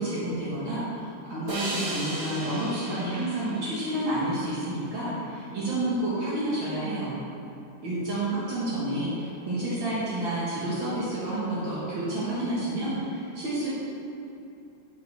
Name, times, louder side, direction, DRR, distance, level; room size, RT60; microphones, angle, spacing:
voice 1, 0.0-7.2 7.8-13.7, right 1 dB, 70° right, -9 dB, 2.3 m, -29 dB
sound 1, 1.5-4.8, right 1 dB, 50° right, 1.8 m, -36 dB
12.0 x 5.2 x 3.5 m, 2.8 s
omnidirectional pair, 2.3 m